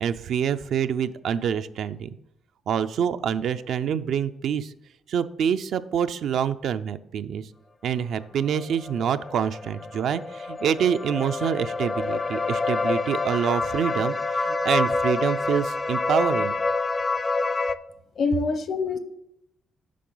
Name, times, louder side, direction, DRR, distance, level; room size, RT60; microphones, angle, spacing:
voice 1, 0.0-2.2 2.7-4.7 5.1-7.5 7.8-16.5, right 8 dB, 70° right, 11 dB, 0.4 m, -26 dB
sound 1, 8.4-17.7, left 3 dB, 25° left, 0.4 m, -27 dB
voice 2, 18.2-19.0, left 4 dB, 55° left, 11 dB, 0.9 m, -25 dB
8.4 x 5.9 x 3.9 m, 0.80 s
cardioid pair, 90°, 0 cm